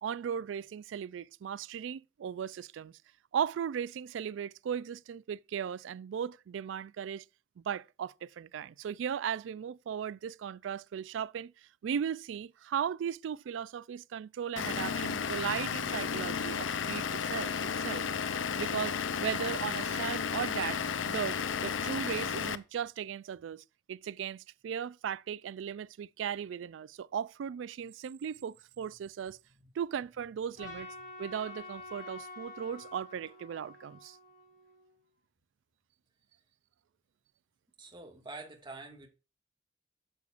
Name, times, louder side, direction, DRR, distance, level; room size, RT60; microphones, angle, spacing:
voice 1, 0.0-3.0 3.3-7.2 7.6-11.5 11.8-18.1 18.6-20.8 21.1-29.4 29.8-34.2, right 8 dB, 75° right, 0.3 m, -37 dB
Vehicle / Engine, 14.6-22.6, left 6 dB, 90° left, 0.5 m, -33 dB
Trumpet, 30.6-35.0, left 2 dB, 45° left, 3.4 m, -48 dB
voice 2, 37.8-39.1, right 3 dB, 25° right, 1.8 m, -46 dB
9.7 x 6.9 x 2.5 m
head